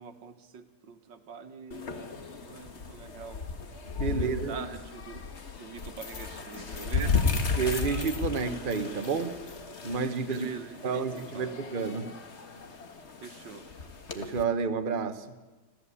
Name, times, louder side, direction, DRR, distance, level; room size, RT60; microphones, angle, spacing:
voice 1, 0.0-1.9 2.4-3.5 4.1-5.2 5.6-7.3 10.3-11.1 11.3-11.6 13.2-13.7, right 6 dB, 85° right, 2.0 m, -43 dB
sound 1, 1.7-14.4, left 4 dB, 40° left, 1.7 m, -34 dB
voice 2, 4.0-4.5 7.6-9.4 9.8-10.5 10.8-12.1 14.1-15.2, right 5 dB, 30° right, 1.3 m, -30 dB
26.0 x 15.5 x 8.4 m
omnidirectional pair, 1.9 m